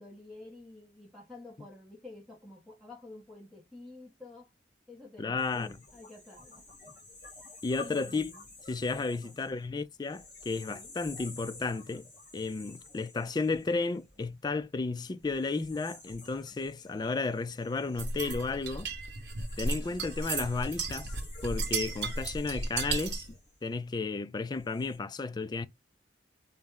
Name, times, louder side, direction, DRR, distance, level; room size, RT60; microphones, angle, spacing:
voice 1, 0.0-4.5 4.9-6.9 7.2-7.3 7.7-8.5 8.9-9.5 10.6-11.0 19.6-20.0, left 2 dB, ahead, 0.7 m, -50 dB
voice 2, 5.2-5.7 7.6-8.3 8.7-12.1 12.3-18.9 19.6-21.1 21.4-23.2 23.6-25.7, left 3 dB, 25° left, 0.3 m, -33 dB
sound 1, 5.4-14.6 15.2-24.0 24.5-25.0, left 3 dB, 50° left, 2.2 m, -51 dB
sound 2, 18.0-23.3, right 3 dB, 70° right, 0.9 m, -35 dB
4.2 x 2.0 x 3.6 m
head